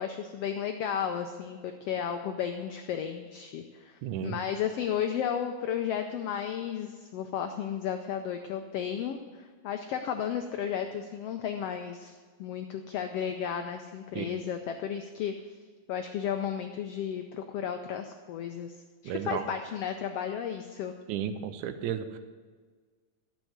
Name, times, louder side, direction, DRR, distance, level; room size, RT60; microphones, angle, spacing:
voice 1, 0.0-12.1 12.4-15.3 15.9-18.8 19.0-20.9, left 8 dB, 85° left, 6 dB, 1.3 m, -33 dB
voice 2, 4.0-4.4 14.2-14.4 19.1-19.5 21.1-22.2, right 9 dB, 85° right, 10 dB, 2.2 m, -33 dB
11.5 x 7.4 x 7.9 m, 1.5 s
omnidirectional pair, 3.5 m